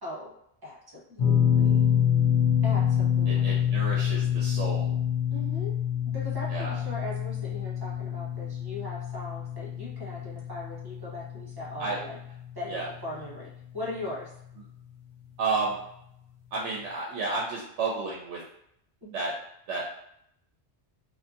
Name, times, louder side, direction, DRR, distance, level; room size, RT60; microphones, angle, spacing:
voice 1, 0.0-0.3 0.6-1.9 2.6-3.4 5.3-5.7 6.1-12.2 12.5-14.3 19.0-19.2, left 2 dB, 25° right, -5 dB, 0.7 m, -39 dB
sound 1, 1.2-13.4 13.7-13.9 15.6-15.7, left 9 dB, 75° left, 0.9 m, -27 dB
voice 2, 3.3-4.9 6.5-6.8 11.8-12.0 12.7-12.9 15.4-15.8 16.5-18.4 19.1-19.3 19.7-19.9, right 3 dB, 90° right, -3 dB, 0.9 m, -31 dB
2.7 x 2.6 x 2.4 m, 0.74 s
omnidirectional pair, 1.2 m